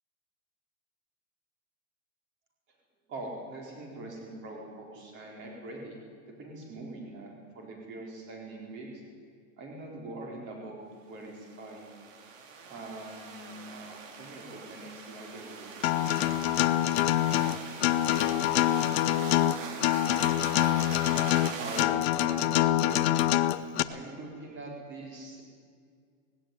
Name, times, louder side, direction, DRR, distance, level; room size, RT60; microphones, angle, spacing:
voice 1, 3.1-6.0 6.3-9.0 9.6-11.9 12.6-16.2 21.2-23.0 23.9-25.4, right 2 dB, 30° right, 0 dB, 4.5 m, -43 dB
sound 1, 11.4-21.8, right 5 dB, 70° right, 3.3 m, -42 dB
Acoustic guitar, 15.8-23.8, left 13 dB, 50° left, 0.8 m, -25 dB
18.5 x 16.5 x 9.6 m, 2.1 s
supercardioid pair, 175°, 40 cm